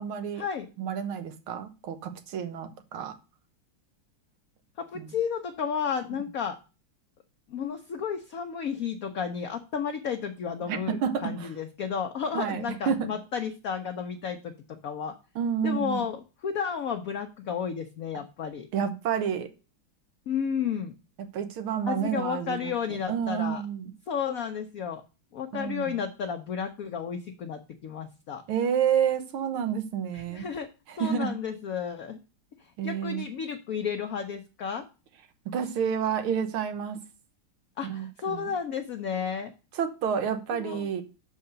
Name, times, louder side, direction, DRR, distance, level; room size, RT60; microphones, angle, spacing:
voice 1, 0.0-0.4 0.8-3.2 5.0-5.1 6.1-6.2 10.7-11.5 12.3-13.1 15.4-16.1 18.7-19.5 21.3-22.7 23.1-23.9 25.5-26.0 28.5-30.5 30.9-31.3 32.8-33.3 35.5-37.0 37.8-38.5 39.8-41.0, right 8 dB, 90° right, 8 dB, 1.9 m, -29 dB
voice 2, 4.8-6.6 7.5-14.5 14.8-15.1 15.6-18.7 20.3-20.9 21.9-23.6 24.1-25.0 25.3-28.4 30.1-30.7 31.0-32.2 32.8-34.8 37.8-39.5 40.5-40.9, left 7 dB, 60° left, 6 dB, 0.9 m, -32 dB
6.5 x 4.9 x 6.6 m, 0.31 s
omnidirectional pair, 2.2 m